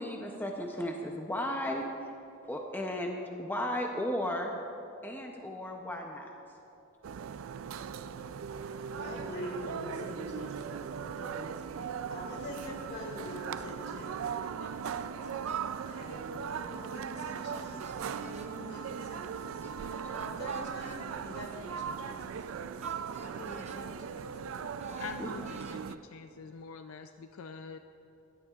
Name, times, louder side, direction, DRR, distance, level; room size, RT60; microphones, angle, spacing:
voice 1, 0.0-1.8 2.4-4.5 5.0-6.3 19.6-19.7 20.0-20.2 24.9-25.5, left 1 dB, 10° left, 1 dB, 0.6 m, -35 dB
sound 1, 7.0-26.0, right 7 dB, 70° right, 0.3 m, -39 dB
voice 2, 8.5-15.5 15.9-22.3 22.9-24.3, equal, 55° left, 0 dB, 2.1 m, -45 dB
sound 2, 15.5-15.7 17.5-18.5 20.1-21.0 22.8-23.8 24.8-25.8, right 4 dB, 35° right, 0.6 m, -52 dB
voice 3, 25.0-27.8, left 5 dB, 80° left, 8 dB, 0.4 m, -45 dB
16.5 x 12.0 x 2.4 m, 2.9 s
head